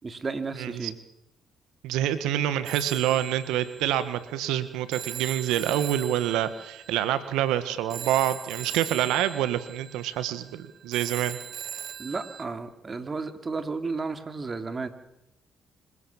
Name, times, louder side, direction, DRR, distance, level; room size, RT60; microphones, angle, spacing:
voice 1, 0.0-1.0 12.0-14.9, right 4 dB, 35° right, 8 dB, 2.8 m, -33 dB
voice 2, 0.6-0.9 1.8-11.4, right 12 dB, 80° right, 13 dB, 1.5 m, -27 dB
Telephone, 2.7-12.4, right 9 dB, 60° right, 1.7 m, -40 dB
26.0 x 16.5 x 7.3 m, 0.84 s
hypercardioid pair, 55°, 0 cm